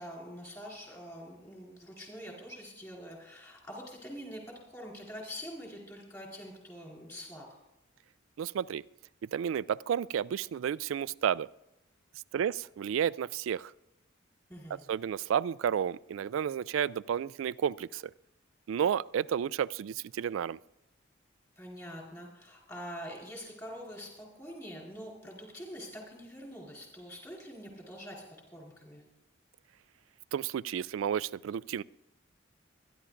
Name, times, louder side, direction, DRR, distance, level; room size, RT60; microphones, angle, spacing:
voice 1, 0.0-7.4 14.5-14.8 21.6-28.2 28.5-29.0, equal, 15° left, -2 dB, 4.5 m, -45 dB
voice 2, 8.4-8.8 9.3-11.5 12.3-13.7 14.9-18.0 18.7-20.6 30.3-31.8, right 8 dB, 90° right, 19 dB, 0.3 m, -31 dB
24.5 x 11.0 x 2.6 m, 0.91 s
head